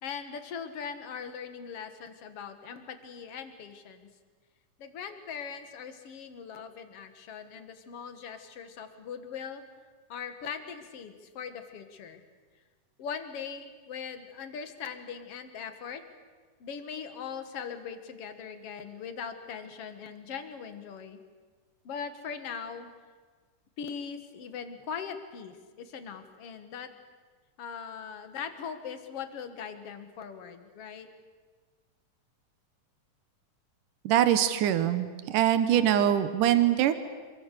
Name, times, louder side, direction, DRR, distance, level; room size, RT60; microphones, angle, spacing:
voice 1, 0.0-4.1 4.8-9.6 10.1-12.2 13.0-16.0 16.6-21.2 21.8-22.9 23.8-26.9 27.6-31.1, left 6 dB, 55° left, 8 dB, 2.4 m, -40 dB
voice 2, 34.0-36.9, right 11 dB, 80° right, 11 dB, 2.7 m, -23 dB
27.0 x 23.0 x 6.8 m, 1.5 s
omnidirectional pair, 3.6 m